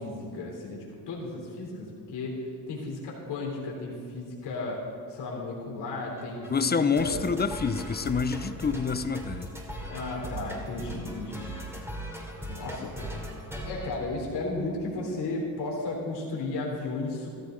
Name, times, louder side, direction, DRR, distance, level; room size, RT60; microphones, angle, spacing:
voice 1, 0.0-2.4 2.7-4.8 5.1-7.3 9.7-11.5 12.4-12.9 13.6-17.3, left 2 dB, 70° left, -3 dB, 3.6 m, -34 dB
sound 1, 6.2-14.8, right 1 dB, 5° right, 3.0 m, -39 dB
voice 2, 6.5-9.5 12.8-12.9, left 5 dB, 25° left, 12 dB, 0.7 m, -27 dB
14.5 x 13.5 x 3.9 m, 2.6 s
cardioid pair, 90°, 41 cm